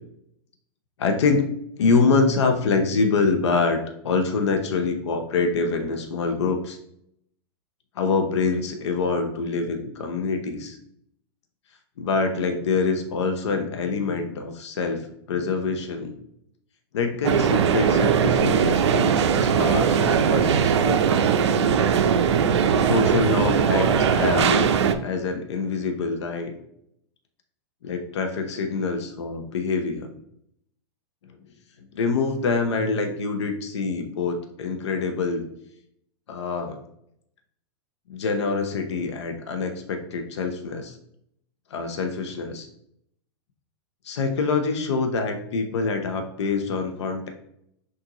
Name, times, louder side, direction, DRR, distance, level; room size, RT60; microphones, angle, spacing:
voice 1, 1.0-6.8 8.0-10.8 12.0-16.1 16.9-21.3 22.8-24.7 25.0-26.5 27.8-30.1 31.9-35.4 36.3-36.8 38.1-41.0 41.7-42.7 44.0-47.3, left 4 dB, 85° left, 5 dB, 0.8 m, -25 dB
sound 1, 17.2-24.9, right 7 dB, 85° right, 0.5 m, -20 dB
6.3 x 2.6 x 2.9 m, 0.73 s
hypercardioid pair, 135°, 14 cm